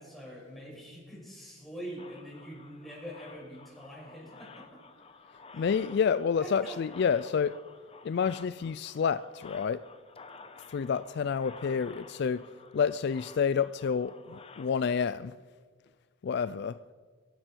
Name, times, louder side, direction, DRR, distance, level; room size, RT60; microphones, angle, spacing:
voice 1, 0.0-4.8 5.5-5.7 6.4-6.8, equal, ahead, -5 dB, 5.7 m, -44 dB
sound 1, 2.0-15.0, left 4 dB, 30° left, 0.9 m, -52 dB
voice 2, 5.5-7.6 8.0-9.8 10.7-12.4 12.7-15.3 16.2-16.8, left 6 dB, 55° left, 15 dB, 0.3 m, -29 dB
23.5 x 11.5 x 4.5 m, 1.6 s
head